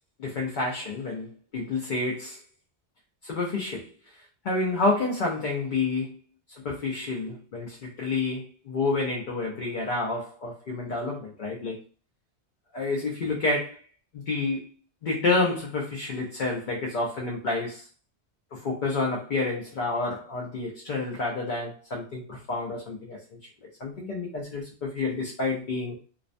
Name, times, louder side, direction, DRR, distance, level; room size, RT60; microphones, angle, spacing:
voice 1, 0.2-2.4 3.2-3.9 4.4-6.2 6.6-11.8 12.7-13.8 14.1-14.7 15.0-17.9 18.5-23.4 23.8-26.0, left 3 dB, 55° left, -1 dB, 0.6 m, -29 dB
2.4 x 2.1 x 2.4 m, 0.40 s
omnidirectional pair, 1.1 m